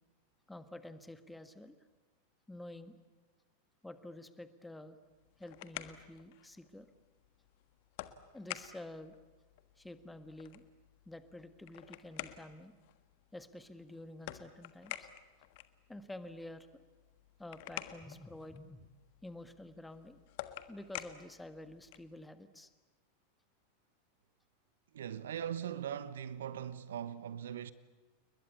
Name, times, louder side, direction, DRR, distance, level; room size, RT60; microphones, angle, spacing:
voice 1, 0.5-1.8 2.5-2.9 3.8-5.0 5.4-6.9 8.3-9.1 9.8-10.6 11.0-12.7 13.3-15.1 15.9-16.8 17.4-18.9 19.2-20.2 20.7-22.7, left 1 dB, 5° left, 1.6 m, -49 dB
sound 1, 5.1-22.2, left 15 dB, 50° left, 1.4 m, -50 dB
voice 2, 24.9-27.7, right 9 dB, 60° right, 1.0 m, -40 dB
30.0 x 21.5 x 8.4 m
figure-of-eight pair, 90°, 0 cm